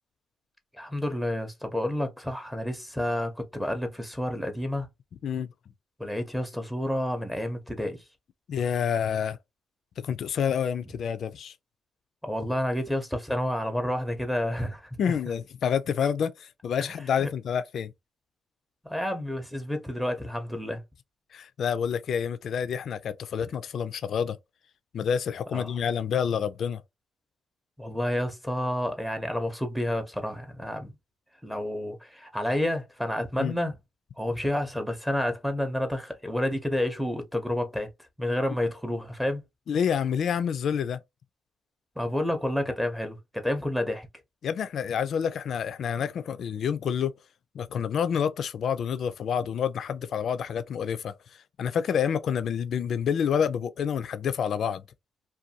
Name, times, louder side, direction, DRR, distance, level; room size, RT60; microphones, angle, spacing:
voice 1, 0.7-4.9 6.0-8.0 12.2-15.0 16.8-16.9 17.2-17.3 18.8-20.8 25.5-25.7 27.8-30.9 31.4-33.8 34.2-37.9 38.2-39.4 42.0-44.1, left 1 dB, 5° right, 0.6 m, -30 dB
voice 2, 8.5-9.4 10.0-11.5 15.0-17.9 21.3-24.4 24.9-26.8 33.4-33.5 39.7-41.0 44.4-47.1 47.5-51.2 51.6-54.8, left 7 dB, 60° left, 0.3 m, -28 dB
2.5 x 2.2 x 2.7 m
cardioid pair, 90°, 0 cm